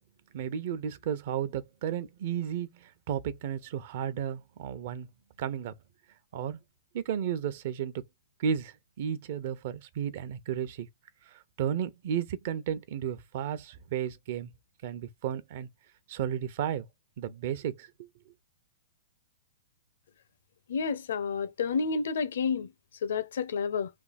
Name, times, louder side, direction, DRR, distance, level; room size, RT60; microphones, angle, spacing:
voice 1, 0.3-5.1 5.4-5.7 6.3-6.6 6.9-7.9 8.4-10.9 11.6-14.5 14.8-15.7 16.1-16.9 17.2-18.1, right 9 dB, 45° right, 0.8 m, -33 dB
voice 2, 20.7-22.7 23.0-23.9, left 5 dB, 70° left, 0.8 m, -30 dB
3.5 x 2.8 x 4.2 m
hypercardioid pair, 160°, 0 cm